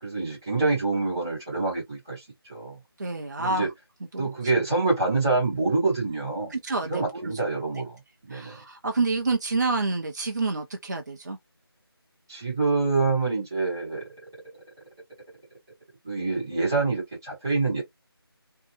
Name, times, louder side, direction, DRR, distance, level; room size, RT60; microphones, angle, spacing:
voice 1, 0.0-2.2 2.5-2.8 3.4-3.7 4.2-6.5 6.9-7.9 8.3-8.6 12.3-14.0 16.0-17.8, right 3 dB, 10° right, 0.7 m, -26 dB
voice 2, 3.0-3.7 4.1-4.3 6.5-7.3 8.3-11.4, right 3 dB, 45° right, 0.4 m, -28 dB
2.7 x 2.0 x 2.4 m
figure-of-eight pair, 175°, 13 cm